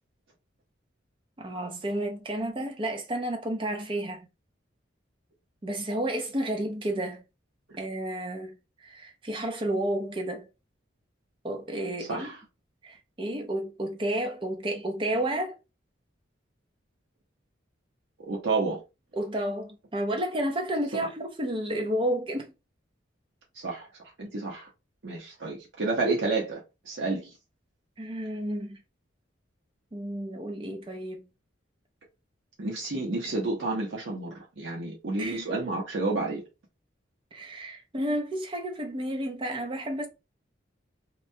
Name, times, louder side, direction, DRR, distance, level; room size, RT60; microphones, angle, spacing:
voice 1, 1.4-4.3 5.6-7.2 7.8-10.5 11.4-12.3 12.8-15.6 19.1-22.5 28.0-28.8 29.9-31.2 35.2-35.4 37.3-40.1, right 1 dB, 25° right, 0.5 m, -31 dB
voice 2, 12.0-12.4 18.2-18.8 23.6-23.9 24.2-24.7 25.0-27.3 32.6-36.4, right 3 dB, 65° right, 0.7 m, -30 dB
2.9 x 2.1 x 2.6 m
head